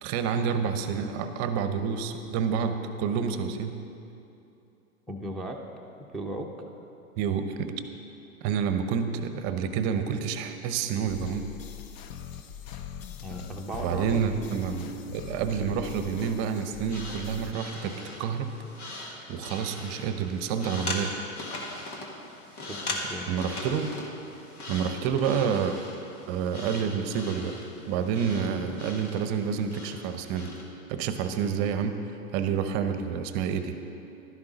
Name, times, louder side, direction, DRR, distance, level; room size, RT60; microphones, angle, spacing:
voice 1, 0.0-3.7 7.2-7.8 8.4-11.5 13.8-18.5 19.3-21.1 23.3-23.9 24.7-25.8 26.3-27.5 27.9-30.5 30.9-32.0 32.3-33.7, right 7 dB, 35° right, 9 dB, 0.7 m, -28 dB
voice 2, 5.1-5.6 6.1-6.7 13.2-14.1 22.7-23.3, right 1 dB, ahead, -2 dB, 0.7 m, -36 dB
sound 1, 11.1-17.5, left 8 dB, 40° left, 0.6 m, -41 dB
sound 2, 16.8-30.7, left 2 dB, 85° left, 1.7 m, -40 dB
12.0 x 10.5 x 4.0 m, 2.8 s
hypercardioid pair, 115°, 43 cm